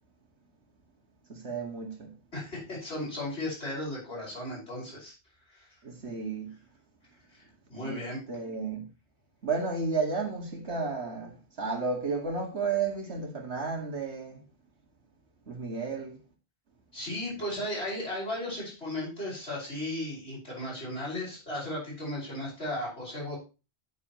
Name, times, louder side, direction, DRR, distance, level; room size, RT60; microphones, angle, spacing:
voice 1, 1.3-2.1 5.8-6.6 7.8-8.9 9.4-14.4 15.5-16.2, right 4 dB, 85° right, 2.4 m, -33 dB
voice 2, 2.3-5.1 5.5-5.7 7.3-7.4 7.7-8.2 16.9-23.4, left 1 dB, 80° left, 5.7 m, -35 dB
10.5 x 9.2 x 3.1 m
omnidirectional pair, 1.1 m